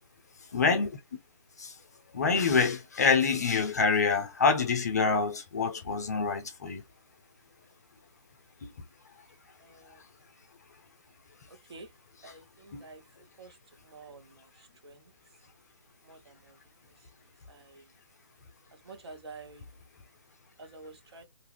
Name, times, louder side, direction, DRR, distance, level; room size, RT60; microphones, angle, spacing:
voice 1, 0.5-1.0 1.6-1.7 2.1-6.8 8.6-8.7 12.7-12.8, left 5 dB, 30° left, 0.4 m, -26 dB
voice 2, 9.6-10.0 11.5-11.9 12.2-13.0 13.4-13.6 13.8-15.1 16.0-16.6 16.9-17.1 17.5-17.9 18.7-19.8 20.6-21.2, right 3 dB, 55° right, 1.0 m, -50 dB
2.4 x 2.3 x 3.2 m
figure-of-eight pair, 155°, 17 cm